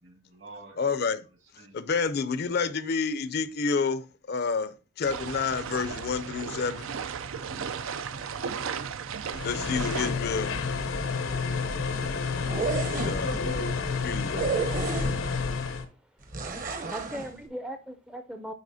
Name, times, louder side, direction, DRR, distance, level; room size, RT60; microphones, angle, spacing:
voice 1, 0.0-0.8 1.6-1.8 13.5-13.8 15.8-16.0, right 2 dB, 60° right, 1.9 m, -52 dB
voice 2, 0.8-1.2 1.7-6.9 9.4-10.6 12.9-13.5 14.0-14.6, left 5 dB, 55° left, 0.5 m, -29 dB
sound 1, 5.0-10.1, right 6 dB, 85° right, 0.5 m, -35 dB
sound 2, 9.3-15.8, left 4 dB, 90° left, 0.9 m, -30 dB
sound 3, 12.4-13.4 14.3-15.4 16.3-17.3, right 4 dB, 45° right, 0.9 m, -31 dB
voice 3, 15.2-15.9 16.9-18.5, equal, 5° right, 0.4 m, -39 dB
9.7 x 4.1 x 2.7 m
head